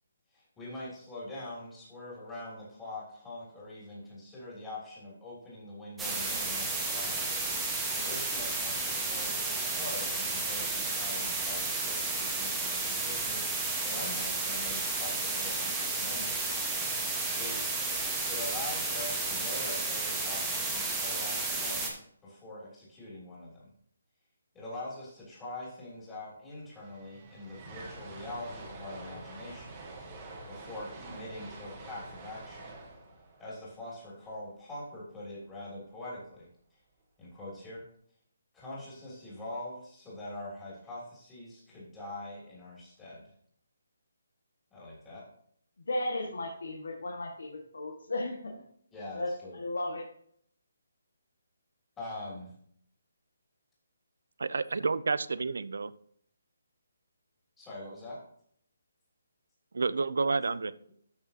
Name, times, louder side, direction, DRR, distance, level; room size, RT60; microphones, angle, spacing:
voice 1, 0.3-7.3 7.9-16.4 17.3-17.6 18.3-23.7 24.5-30.2 30.5-32.7 33.4-36.5 37.2-37.8 38.5-43.2 44.7-45.3 48.9-49.6 52.0-52.5 57.6-58.2, left 2 dB, 15° left, -7 dB, 2.9 m, -43 dB
sound 1, 6.0-21.9, right 3 dB, 5° right, 1.3 m, -32 dB
sound 2, 26.4-34.7, right 2 dB, 25° right, 1.7 m, -47 dB
voice 2, 45.9-48.5 49.1-50.1, left 2 dB, 80° left, 0 dB, 1.6 m, -35 dB
voice 3, 54.4-55.9 59.7-60.7, right 4 dB, 75° right, 17 dB, 0.5 m, -30 dB
13.0 x 5.5 x 2.8 m, 0.65 s
hypercardioid pair, 165°, 0 cm